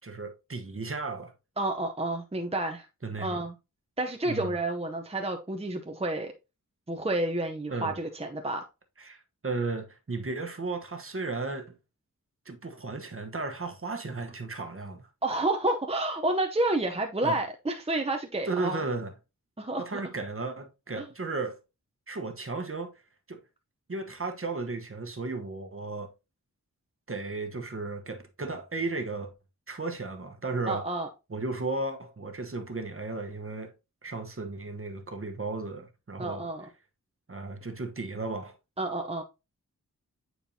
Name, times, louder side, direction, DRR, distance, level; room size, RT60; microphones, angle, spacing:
voice 1, 0.0-1.3 3.0-3.4 4.3-4.6 7.7-8.0 9.0-11.7 12.4-15.1 17.2-17.4 18.5-19.1 19.8-21.6 22.1-22.9 23.3-23.4 23.9-26.1 27.1-29.3 29.7-30.8 31.3-33.7 34.0-36.5 37.3-38.5, right 3 dB, 40° right, 1.1 m, -34 dB
voice 2, 1.6-2.9 3.2-3.5 4.0-6.3 6.9-8.6 15.2-18.8 19.6-20.0 21.0-21.1 30.7-31.1 36.2-36.7 38.8-39.2, right 2 dB, 20° right, 0.7 m, -30 dB
8.8 x 4.5 x 2.7 m
wide cardioid pair, 70°, 35 cm